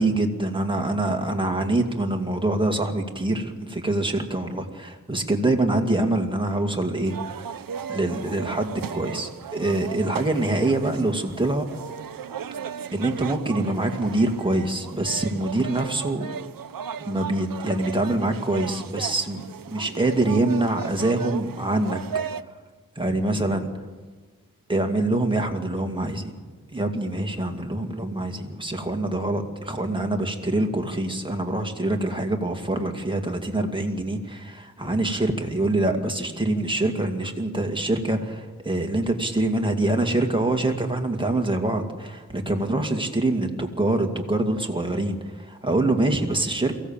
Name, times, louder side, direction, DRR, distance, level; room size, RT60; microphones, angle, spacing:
voice 1, 0.0-7.5 7.9-11.8 12.9-16.3 17.0-22.0 23.0-23.7 24.7-26.3 26.7-46.8, right 2 dB, 15° right, 3 dB, 2.3 m, -25 dB
sound 1, 7.0-22.4, right 7 dB, 90° right, 0.7 m, -36 dB
23.0 x 16.5 x 7.4 m, 1.4 s
wide cardioid pair, 80°, 33 cm